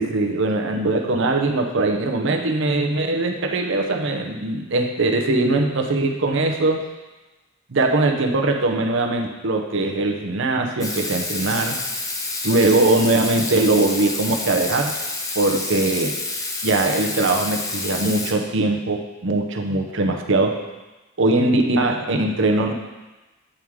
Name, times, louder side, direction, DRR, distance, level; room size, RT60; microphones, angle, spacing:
voice 1, 0.0-6.9 7.7-11.8 12.4-15.0 15.4-16.1 16.6-20.6 21.2-22.7, right 2 dB, 65° right, 3 dB, 0.7 m, -21 dB
Water tap faucet / Sink (filling or washing), 10.8-18.3, left 2 dB, 15° left, 0.6 m, -28 dB
8.7 x 3.6 x 4.7 m, 1.1 s
head